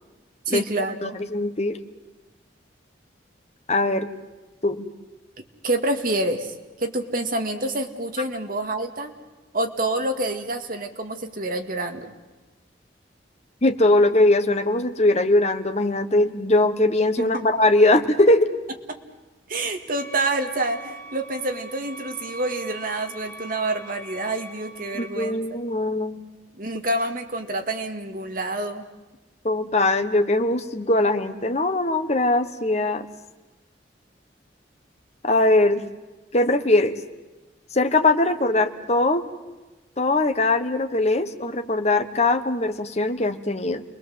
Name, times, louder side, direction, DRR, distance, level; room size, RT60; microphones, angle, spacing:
voice 1, 0.5-1.2 5.4-9.1 9.5-12.1 17.2-17.5 18.9-19.0 19.5-25.4 26.5-28.8, right 2 dB, 50° right, 5 dB, 2.1 m, -27 dB
voice 2, 1.0-1.8 3.7-4.1 4.6-4.8 13.6-18.5 24.9-26.3 29.4-33.1 35.2-35.8 36.3-37.0 37.7-39.2 40.0-43.8, left 2 dB, 35° left, 7 dB, 1.3 m, -21 dB
sound 1, 20.0-25.1, right 1 dB, 15° left, 5.4 m, -42 dB
29.5 x 21.5 x 7.8 m, 1.1 s
head